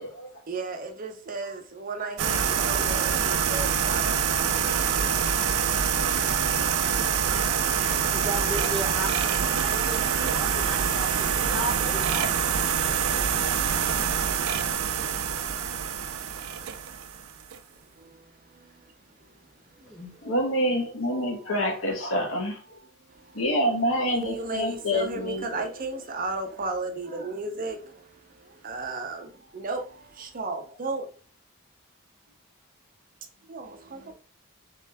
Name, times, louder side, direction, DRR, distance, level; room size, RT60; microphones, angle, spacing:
voice 1, 0.5-5.5 11.3-11.4 17.7-20.0 21.1-21.2 23.1-23.5 24.1-31.1 33.4-34.1, right 3 dB, 40° right, 0.6 m, -36 dB
sound 1, 2.2-17.6, right 7 dB, 90° right, 0.5 m, -25 dB
voice 2, 8.1-12.3 19.8-20.1, equal, 5° left, 1.0 m, -35 dB
voice 3, 20.2-22.8 23.3-25.6, equal, 80° left, 1.2 m, -27 dB
3.7 x 3.2 x 3.4 m
head